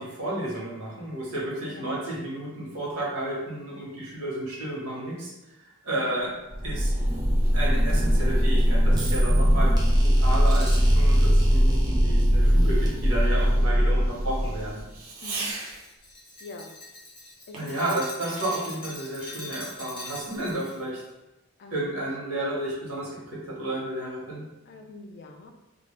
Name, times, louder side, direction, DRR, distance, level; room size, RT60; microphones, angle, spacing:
voice 1, 0.0-5.3 5.8-6.3 6.6-6.9 7.5-9.7 10.0-14.8 17.6-21.0 21.7-24.4, right 1 dB, 90° right, -5 dB, 1.0 m, -32 dB
Fireworks, 6.4-16.1 17.5-18.8, right 3 dB, 75° right, 0.5 m, -44 dB
sound 1, 6.5-15.0, equal, 20° right, 0.4 m, -21 dB
Glass, 14.4-20.8, left 2 dB, 25° left, 0.7 m, -42 dB
voice 2, 16.4-16.7 17.5-17.7 21.6-21.9 24.7-25.5, left 3 dB, 50° left, 3 dB, 0.3 m, -44 dB
2.3 x 2.1 x 3.0 m, 0.99 s
head